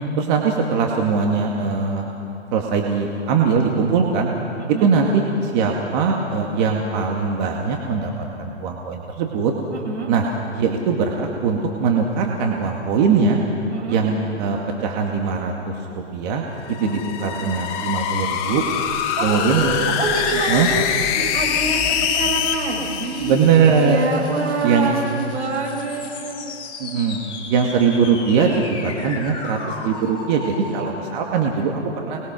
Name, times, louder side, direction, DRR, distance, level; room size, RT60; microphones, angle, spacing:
voice 1, 0.2-2.1 2.5-4.3 4.8-8.1 8.4-9.5 10.1-10.3 10.5-13.4 13.9-18.6 19.2-19.8 20.5-20.7 23.2-24.0 24.6-25.0 26.8-27.2 27.5-32.2, right 5 dB, 40° right, 1 dB, 2.3 m, -21 dB
voice 2, 9.7-10.1 13.7-14.0 16.7-17.0 19.2-20.8 21.1-26.4, right 3 dB, 80° right, -1 dB, 7.8 m, -26 dB
sound 1, 16.6-24.0, left 8 dB, 35° left, 1.9 m, -24 dB
sound 2, 21.1-30.9, left 4 dB, 15° left, 3.5 m, -37 dB
29.0 x 21.5 x 6.3 m, 2.9 s
hypercardioid pair, 135°, 35 cm